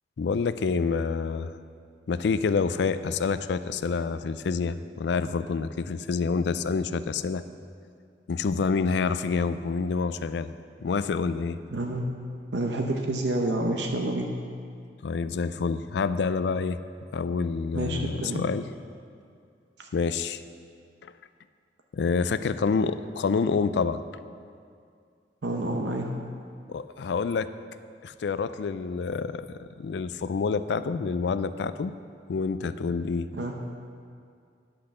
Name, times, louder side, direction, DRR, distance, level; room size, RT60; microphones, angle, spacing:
voice 1, 0.2-1.5 2.1-7.4 8.3-10.5 10.8-11.6 15.0-16.8 17.1-18.7 19.9-20.4 21.0-21.1 21.9-24.0 26.7-27.5 28.0-31.9 32.3-33.3, left 5 dB, 75° left, 13 dB, 0.4 m, -27 dB
voice 2, 11.7-12.1 12.5-14.3 17.7-18.4 19.8-19.9 25.4-26.1 33.3-33.6, right 1 dB, 80° right, 2 dB, 0.8 m, -28 dB
10.5 x 5.9 x 6.5 m, 2.2 s
head